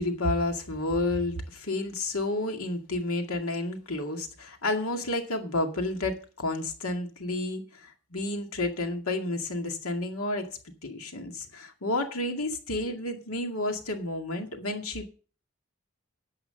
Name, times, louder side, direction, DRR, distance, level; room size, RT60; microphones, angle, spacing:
voice 1, 0.0-10.5 10.8-15.1, left 2 dB, 85° left, 2.2 m, -31 dB
11.0 x 7.8 x 6.7 m
head